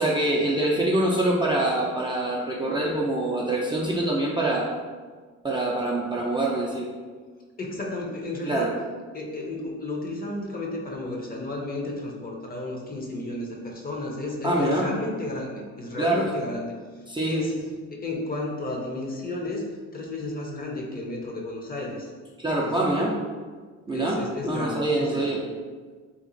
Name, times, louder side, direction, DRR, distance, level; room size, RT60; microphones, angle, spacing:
voice 1, 0.0-4.7 5.4-6.9 8.4-8.7 14.4-14.9 16.0-16.3 17.1-17.5 22.4-23.1 23.9-25.4, right 1 dB, 15° right, -4 dB, 0.5 m, -25 dB
voice 2, 7.6-8.7 9.1-16.7 17.2-17.5 17.9-19.6 19.9-22.1 22.6-22.9 23.9-25.4, left 2 dB, 30° left, -1 dB, 0.7 m, -32 dB
2.9 x 2.4 x 3.8 m, 1.5 s
cardioid pair, 90°, 30 cm